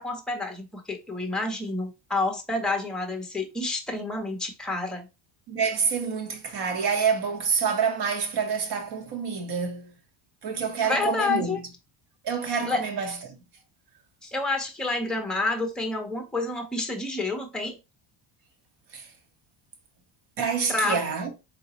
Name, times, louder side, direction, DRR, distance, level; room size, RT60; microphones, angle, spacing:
voice 1, 0.0-5.1 10.8-11.6 12.7-12.8 14.2-17.8 20.7-21.0, left 3 dB, ahead, 0.6 m, -29 dB
voice 2, 5.5-9.9 10.4-11.6 12.2-13.4 18.9-19.1 20.4-21.3, right 6 dB, 55° right, 1.1 m, -27 dB
4.0 x 3.7 x 2.9 m
cardioid pair, 155°, 47 cm